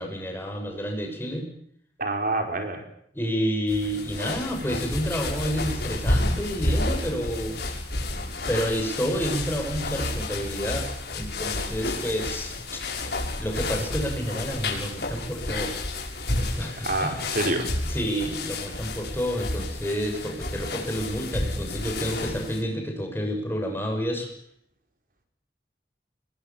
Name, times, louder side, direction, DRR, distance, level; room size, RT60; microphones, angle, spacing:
voice 1, 0.0-1.5 3.1-7.6 8.5-15.8 16.4-17.2 17.8-24.3, equal, 15° left, 3 dB, 6.6 m, -30 dB
voice 2, 2.0-2.8 16.8-17.7, right 2 dB, 50° right, 5 dB, 4.7 m, -26 dB
sound 1, 3.7-22.6, left 2 dB, 65° left, 6.7 m, -30 dB
26.5 x 22.0 x 7.4 m, 0.66 s
head